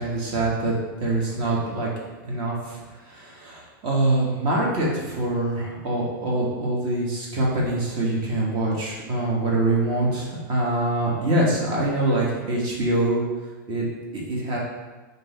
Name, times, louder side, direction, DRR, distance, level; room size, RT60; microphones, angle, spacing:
voice 1, 0.0-1.9 2.2-2.8 3.1-13.2 13.7-13.8 14.1-14.6, right 2 dB, 40° right, -3 dB, 1.1 m, -24 dB
3.7 x 2.7 x 3.9 m, 1.2 s
hypercardioid pair, 120°, 11 cm